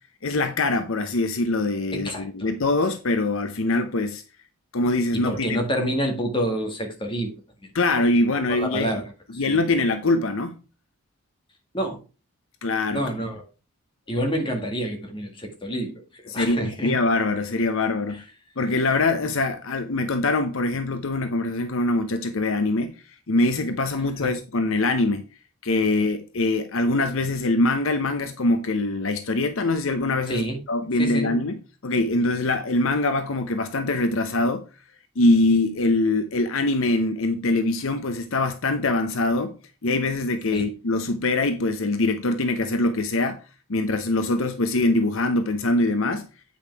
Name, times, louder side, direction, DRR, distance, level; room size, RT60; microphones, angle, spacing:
voice 1, 0.2-4.2 4.7-5.6 7.7-9.0 9.4-10.6 12.6-13.0 16.3-18.2 18.6-22.9 23.3-25.2 25.6-31.6 31.8-34.7 35.2-39.5 39.8-43.4 43.7-46.3, left 2 dB, 60° left, 0.7 m, -23 dB
voice 2, 1.9-2.5 5.1-7.3 8.5-9.6 11.7-12.0 12.9-13.4 14.1-17.0 18.1-18.2 24.2-24.3 30.3-30.6 31.0-31.4 40.5-40.7, equal, 20° left, 1.9 m, -28 dB
8.7 x 5.5 x 4.5 m
head